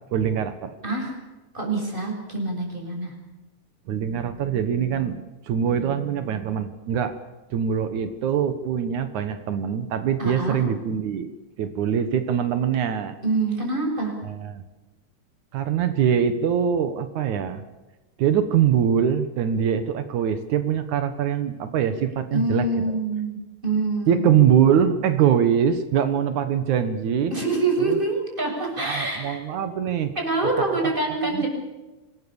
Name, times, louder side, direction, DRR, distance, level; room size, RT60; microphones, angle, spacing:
voice 1, 0.1-0.7 3.9-7.1 7.5-13.2 14.2-14.6 15.5-17.6 18.2-23.0 24.1-27.3 27.8-28.0 28.6-30.1 31.3-31.4, right 8 dB, 80° right, 10 dB, 2.8 m, -23 dB
voice 2, 0.8-1.2 1.5-3.1 10.2-10.6 13.2-14.1 22.3-23.4 23.6-24.4 27.3-29.4 30.2-31.5, right 2 dB, 15° right, 1 dB, 7.2 m, -25 dB
26.0 x 20.5 x 7.1 m, 1.1 s
omnidirectional pair, 3.3 m